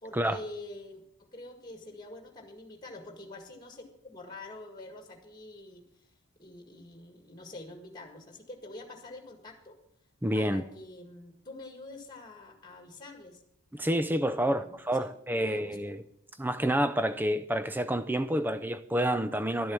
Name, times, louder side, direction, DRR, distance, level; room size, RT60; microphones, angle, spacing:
voice 1, 0.0-1.0 1.3-9.7 10.3-13.4 14.4-15.8, left 2 dB, 20° left, 1.8 m, -46 dB
voice 2, 10.2-10.6 13.7-16.0 16.4-19.7, equal, 10° right, 0.5 m, -28 dB
12.0 x 7.9 x 7.1 m
head